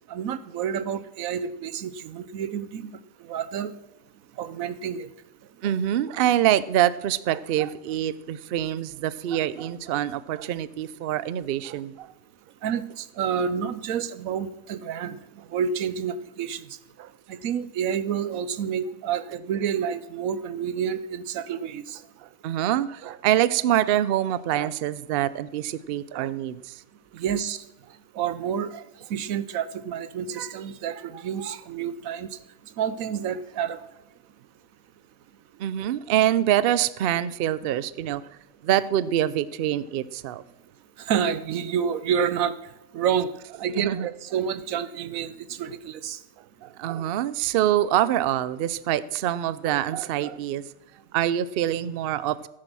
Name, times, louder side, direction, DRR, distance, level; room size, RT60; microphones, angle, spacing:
voice 1, 0.1-3.7 4.4-5.1 12.6-15.2 15.5-16.7 17.3-22.0 27.1-27.6 28.1-28.8 29.1-32.4 32.8-33.8 41.0-42.6 42.9-43.3 43.6-46.2, right 8 dB, 85° right, 14 dB, 1.2 m, -29 dB
voice 2, 5.6-12.1 17.0-17.1 22.2-26.8 35.6-38.2 38.6-40.4 43.7-44.1 46.6-50.6 51.1-52.5, right 12 dB, 60° right, 17 dB, 0.6 m, -25 dB
15.0 x 8.8 x 6.1 m, 0.95 s
omnidirectional pair, 1.4 m